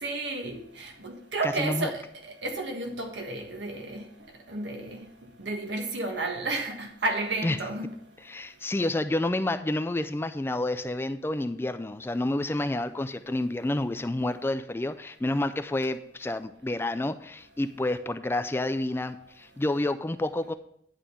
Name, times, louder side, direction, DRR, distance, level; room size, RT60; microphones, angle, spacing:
voice 1, 0.0-4.0 4.5-5.0 5.4-7.9, right 2 dB, 90° right, 3 dB, 1.4 m, -32 dB
voice 2, 1.4-1.9 7.4-7.6 8.2-20.5, left 1 dB, 15° left, 11 dB, 0.3 m, -29 dB
10.5 x 3.8 x 6.8 m, 0.69 s
head